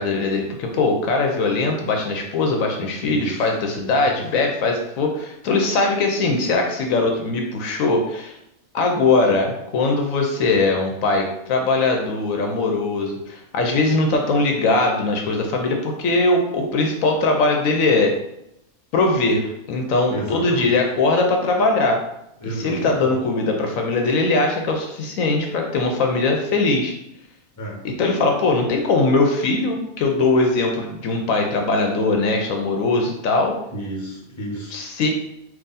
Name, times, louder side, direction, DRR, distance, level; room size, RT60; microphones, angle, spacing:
voice 1, 0.0-8.4 8.7-18.1 18.9-22.0 22.5-26.9 27.8-33.6 34.7-35.1, left 3 dB, 75° left, 2 dB, 1.0 m, -21 dB
voice 2, 3.0-3.5 4.0-4.2 20.1-20.8 22.4-23.1 27.6-27.8 33.7-34.8, right 1 dB, 15° left, -4 dB, 0.8 m, -32 dB
3.6 x 2.6 x 4.0 m, 0.81 s
omnidirectional pair, 1.5 m